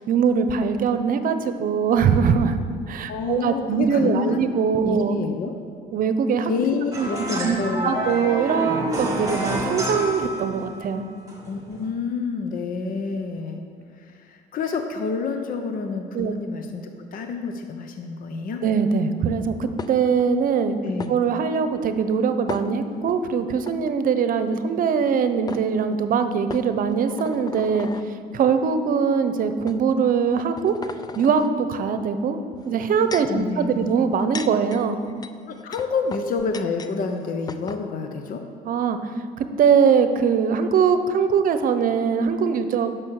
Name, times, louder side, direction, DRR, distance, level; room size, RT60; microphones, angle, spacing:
voice 1, 0.0-2.6 2.9-5.1 5.9-6.5 7.0-7.1 7.4-7.6 7.8-11.0 16.1-16.3 18.6-20.8 21.1-27.9 28.3-30.7 31.2-32.4 32.6-35.0 38.6-39.1 39.4-42.9, right 6 dB, 55° right, 9 dB, 0.8 m, -22 dB
voice 2, 3.1-4.5 4.8-5.5 6.5-8.0 11.5-13.6 14.0-18.6 20.8-21.1 33.3-33.9 35.5-38.4, left 5 dB, 55° left, 5 dB, 0.9 m, -28 dB
sound 1, 6.9-10.9 11.3-11.9, right 1 dB, 20° right, 2.0 m, -28 dB
sound 2, 19.8-20.3 21.0-21.1 22.5-23.1 23.6-23.7 25.0-25.1 25.5-25.6 26.5-28.1 28.9-29.0 29.7-29.8 30.3-31.5 32.6-33.4 34.0-36.9 37.2-37.3 37.5-37.8, left 5 dB, 25° left, 0.5 m, -36 dB
10.5 x 6.3 x 6.4 m, 2.2 s
cardioid pair, 110°, 17 cm